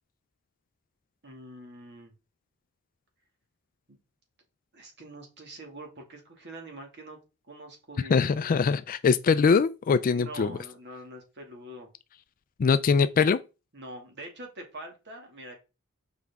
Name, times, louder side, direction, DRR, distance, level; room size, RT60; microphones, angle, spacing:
voice 1, 1.2-2.1 3.9-4.0 4.7-7.2 7.5-8.3 10.1-11.9 13.7-15.6, right 1 dB, 55° right, 2.1 m, -44 dB
voice 2, 8.1-10.5 12.6-13.4, left 5 dB, 40° left, 0.3 m, -22 dB
7.0 x 5.0 x 3.5 m
head